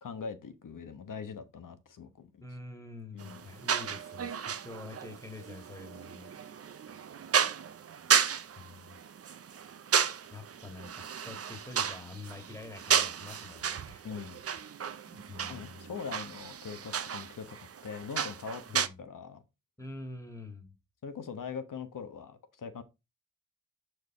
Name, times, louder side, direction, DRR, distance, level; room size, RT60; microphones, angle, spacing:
voice 1, 0.0-2.4 3.1-3.5 14.0-14.4 15.5-17.6 17.8-19.4 21.0-22.8, left 6 dB, 60° left, 1.2 m, -42 dB
voice 2, 2.4-6.4 8.5-9.0 10.3-14.1 15.0-15.8 18.7-19.0 19.8-20.7, left 2 dB, 10° left, 1.8 m, -46 dB
sound 1, 3.2-18.9, right 7 dB, 40° right, 0.6 m, -33 dB
6.3 x 4.7 x 3.6 m
cardioid pair, 60°, 36 cm